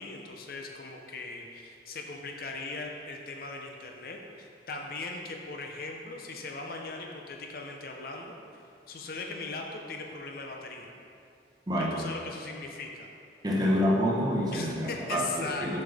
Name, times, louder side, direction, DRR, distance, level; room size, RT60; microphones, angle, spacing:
voice 1, 0.0-10.9 11.8-13.1 14.5-15.8, left 3 dB, 55° left, 1 dB, 0.6 m, -39 dB
voice 2, 11.7-12.0 13.4-14.7 15.1-15.8, equal, 25° right, -4 dB, 1.0 m, -27 dB
7.5 x 5.4 x 3.5 m, 2.5 s
head